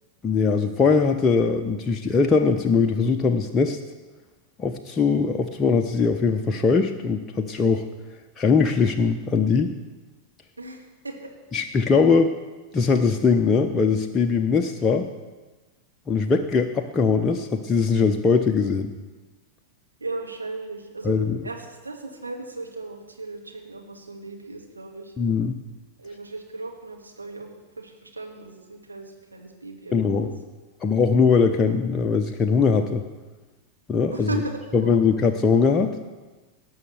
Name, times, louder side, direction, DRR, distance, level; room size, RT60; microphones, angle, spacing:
voice 1, 0.2-3.8 4.6-7.9 8.4-9.7 11.5-12.4 12.7-15.1 16.1-18.9 21.0-21.4 25.2-25.6 29.9-30.3 30.8-33.0 33.9-34.3 34.7-35.9, left 5 dB, 20° left, 4 dB, 0.7 m, -21 dB
voice 2, 10.6-11.3 20.0-21.1 21.4-25.1 26.0-30.3 34.1-35.0, right 3 dB, 80° right, 1 dB, 2.0 m, -36 dB
18.0 x 6.4 x 6.8 m, 1.2 s
figure-of-eight pair, 90°, 0 cm